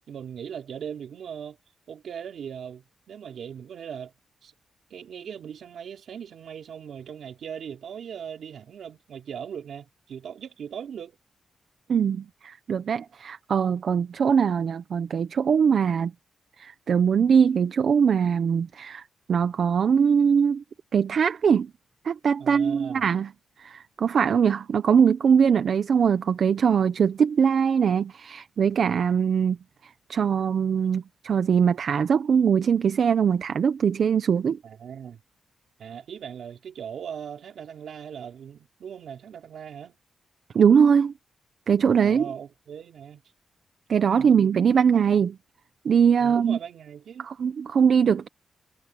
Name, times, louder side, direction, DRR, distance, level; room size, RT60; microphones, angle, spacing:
voice 1, 0.1-1.6 1.9-4.1 4.4-4.5 4.9-11.2 22.4-23.1 34.6-35.2 35.8-40.0 42.0-43.2 44.2-44.4 46.2-47.3, right 8 dB, 70° right, 3.7 m, -39 dB
voice 2, 11.9-16.1 16.6-19.0 19.3-20.6 20.9-21.7 22.0-23.3 23.6-29.6 30.1-34.6 40.5-41.1 41.7-42.3 43.9-45.4 45.8-46.6 47.2-48.3, right 7 dB, 55° right, 0.7 m, -21 dB
wide cardioid pair, 175°, 0 cm